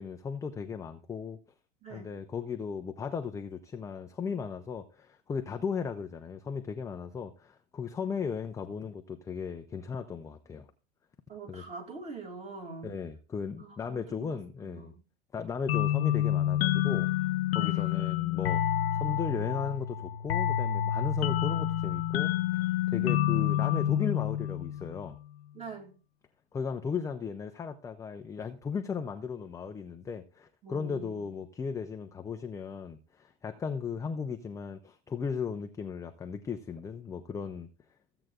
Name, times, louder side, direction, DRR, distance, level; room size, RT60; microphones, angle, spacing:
voice 1, 0.0-1.4 1.9-10.7 11.5-11.6 12.8-14.9 15.3-18.6 18.9-25.2 26.5-37.7, left 6 dB, 10° left, 0.4 m, -36 dB
voice 2, 11.3-12.9 13.6-15.0 17.5-18.2 22.9-23.3 25.5-25.9 30.6-31.3, right 4 dB, 20° right, 2.5 m, -45 dB
sound 1, 15.7-25.0, left 11 dB, 70° left, 0.8 m, -28 dB
15.5 x 7.9 x 2.4 m
supercardioid pair, 130°, 32 cm